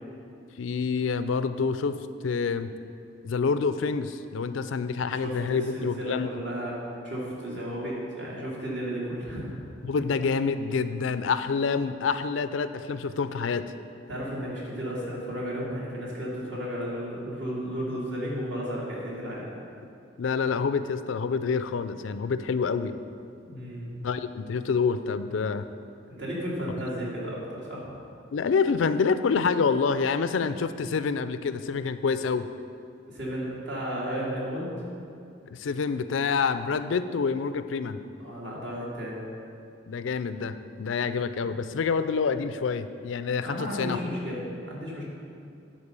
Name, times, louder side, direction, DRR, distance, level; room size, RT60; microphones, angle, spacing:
voice 1, 0.6-2.0 2.2-2.7 3.2-6.3 9.8-13.7 20.2-22.9 24.0-25.7 28.3-32.5 35.5-38.0 39.9-44.0, left 5 dB, 90° left, 12 dB, 0.4 m, -27 dB
voice 2, 5.1-9.6 14.1-19.5 23.4-24.0 26.1-27.9 33.1-34.7 38.2-39.2 43.4-45.0, equal, 65° right, -5 dB, 2.4 m, -33 dB
10.0 x 4.5 x 6.8 m, 2.6 s
head